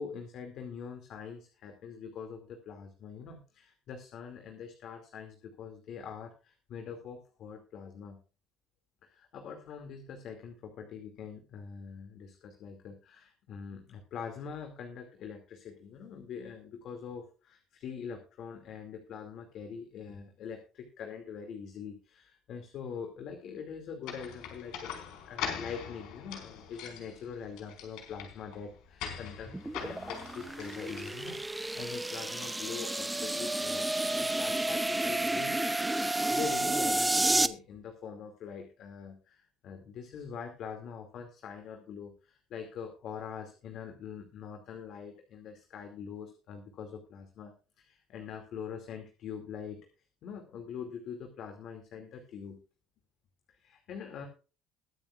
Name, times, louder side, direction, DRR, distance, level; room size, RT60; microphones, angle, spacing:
voice 1, 0.0-8.2 9.0-24.9 25.3-33.9 34.1-35.7 36.0-49.8 50.2-52.6 53.6-54.3, left 6 dB, 50° left, 5 dB, 2.5 m, -43 dB
sound 1, 24.0-31.7, left 8 dB, 75° left, 4.7 m, -42 dB
sound 2, 29.5-37.5, right 2 dB, 5° right, 0.6 m, -31 dB
22.0 x 9.0 x 2.5 m, 0.34 s
cardioid pair, 165°, 0 cm